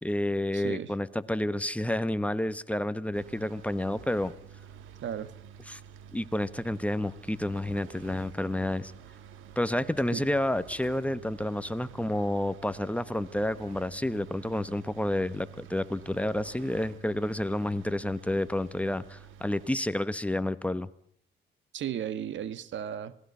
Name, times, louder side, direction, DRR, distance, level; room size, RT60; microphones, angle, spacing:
voice 1, 0.0-4.3 5.7-5.8 6.1-8.9 9.6-20.9, left 1 dB, 5° left, 13 dB, 1.2 m, -30 dB
voice 2, 0.5-0.9 5.0-5.3 10.1-10.2 21.7-23.2, right 9 dB, 70° right, 15 dB, 1.5 m, -35 dB
sound 1, 3.1-19.7, right 8 dB, 90° right, 1.7 m, -49 dB
27.0 x 19.0 x 5.7 m, 0.66 s
cardioid pair, 90°, 20 cm